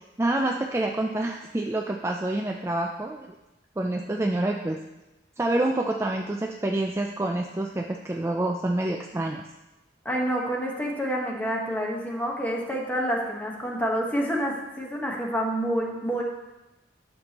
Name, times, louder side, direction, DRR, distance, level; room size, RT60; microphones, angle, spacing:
voice 1, 0.2-3.3 3.8-4.8 5.4-9.4, right 1 dB, 15° right, 1 dB, 0.4 m, -27 dB
voice 2, 10.0-16.2, equal, 10° left, -1 dB, 1.3 m, -28 dB
11.5 x 6.7 x 3.0 m, 1.0 s
head